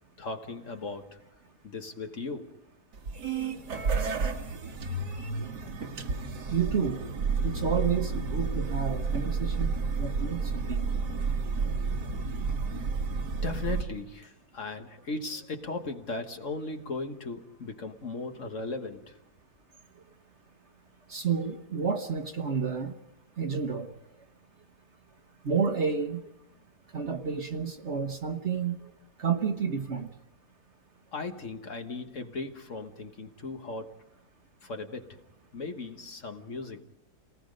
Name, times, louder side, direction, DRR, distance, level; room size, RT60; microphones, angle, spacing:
voice 1, 0.2-1.2 1.6-2.6 13.4-19.2 31.1-34.0 34.6-35.2 35.5-36.8, left 3 dB, 50° left, 1.6 m, -37 dB
sound 1, 2.9-13.8, right 4 dB, 80° right, 2.2 m, -31 dB
voice 2, 6.5-7.1 7.4-10.9 21.1-22.9 23.4-23.9 25.4-26.2 26.9-28.8 29.2-30.1, right 6 dB, 45° right, 1.3 m, -30 dB
29.5 x 19.0 x 5.3 m
omnidirectional pair, 1.8 m